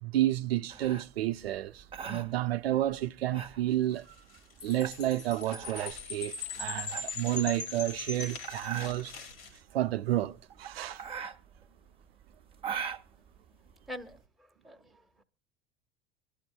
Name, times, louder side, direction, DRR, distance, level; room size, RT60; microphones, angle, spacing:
voice 1, 0.0-4.2 4.6-9.1 9.5-11.0, right 14 dB, 80° right, 0.6 m, -31 dB
sound 1, 0.7-14.2, right 7 dB, 20° right, 1.2 m, -42 dB
sound 2, 3.7-9.6, left 5 dB, 70° left, 2.5 m, -51 dB
Chime, 4.6-9.1, left 5 dB, 40° left, 1.4 m, -40 dB
voice 2, 13.9-15.2, left 1 dB, ahead, 1.4 m, -46 dB
24.5 x 11.5 x 2.2 m
hypercardioid pair, 80°, 30 cm